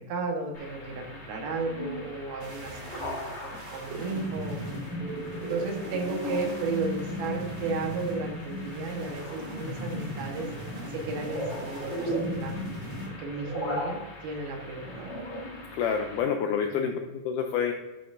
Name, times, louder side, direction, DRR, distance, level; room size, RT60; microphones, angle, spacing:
voice 1, 0.0-4.6 5.4-10.5 10.9-12.7 13.1-15.1 16.7-17.0, right 3 dB, 85° right, 2 dB, 3.1 m, -34 dB
sound 1, 0.5-16.2, equal, 60° left, 0.7 m, -39 dB
sound 2, 2.4-13.1, equal, 55° right, 3.2 m, -37 dB
voice 2, 15.7-17.7, left 7 dB, 85° left, 4 dB, 1.8 m, -28 dB
11.0 x 5.3 x 2.5 m, 1.1 s
omnidirectional pair, 4.2 m